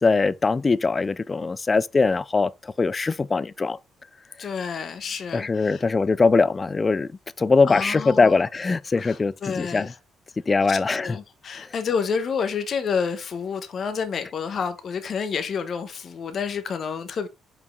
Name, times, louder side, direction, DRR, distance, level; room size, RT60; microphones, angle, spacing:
voice 1, 0.0-2.5 2.8-3.8 5.3-7.1 7.4-9.9 10.5-11.2, left 4 dB, 30° left, 0.4 m, -21 dB
voice 2, 4.4-5.8 7.6-8.4 8.9-9.9 10.7-17.3, left 6 dB, 55° left, 1.2 m, -29 dB
5.6 x 4.6 x 3.8 m
cardioid pair, 90°, 0 cm